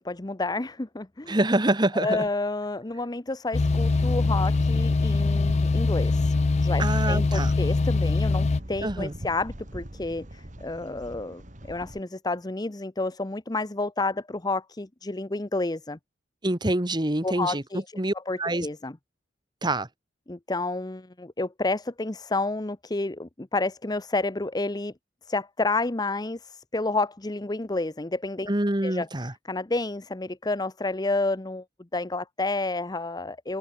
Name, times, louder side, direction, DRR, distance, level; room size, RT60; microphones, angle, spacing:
voice 1, 0.0-1.4 1.9-6.3 6.6-11.4 11.7-16.0 17.2-17.8 18.3-19.0 20.3-24.9 25.3-28.5 28.8-29.1 29.5-31.6 31.9-33.6, left 2 dB, 20° left, 0.8 m, -30 dB
voice 2, 1.3-2.2 6.8-7.5 8.8-9.1 16.4-18.7 19.6-19.9 28.5-29.3, right 1 dB, 25° right, 1.9 m, -26 dB
sound 1, 3.5-8.6, left 3 dB, 40° left, 0.4 m, -23 dB
sound 2, 3.5-12.0, right 1 dB, 45° right, 2.9 m, -43 dB
head